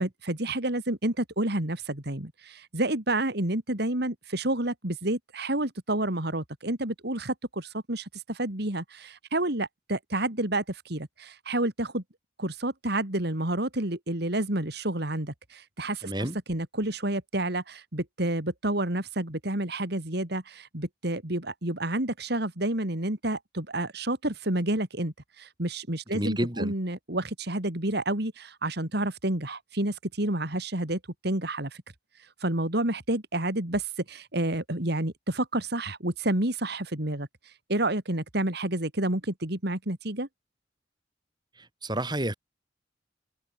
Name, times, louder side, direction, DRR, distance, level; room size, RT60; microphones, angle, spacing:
voice 1, 0.0-12.0 12.4-31.8 32.4-40.3, right 1 dB, 65° right, 3.6 m, -29 dB
voice 2, 16.0-16.4 26.1-26.7 41.8-42.3, right 1 dB, 25° right, 4.5 m, -29 dB
open air
head